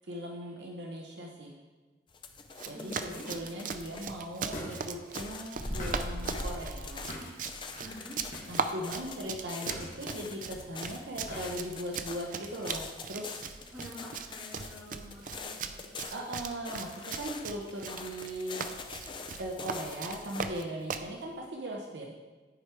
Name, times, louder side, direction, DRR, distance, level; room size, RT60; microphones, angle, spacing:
voice 1, 0.1-1.6 2.7-7.1 8.5-13.7 16.1-18.9 19.4-22.1, equal, 70° right, -1 dB, 0.9 m, -39 dB
sound 1, 2.1-4.2 4.5-20.5, left 4 dB, 25° left, 0.5 m, -45 dB
Run, 2.5-21.1, right 5 dB, 45° right, 0.4 m, -39 dB
voice 2, 2.7-3.3 7.7-8.2 13.7-15.8, equal, 10° right, -12 dB, 2.7 m, -47 dB
sound 2, 3.3-3.4 4.5-4.9 5.1-5.2 5.6-7.3 7.7-7.8 8.3-8.6 8.8-9.1 9.7-10.2 11.3-11.6 12.0-12.1, equal, 45° left, 1.7 m, -38 dB
10.5 x 4.6 x 4.5 m, 1.4 s
head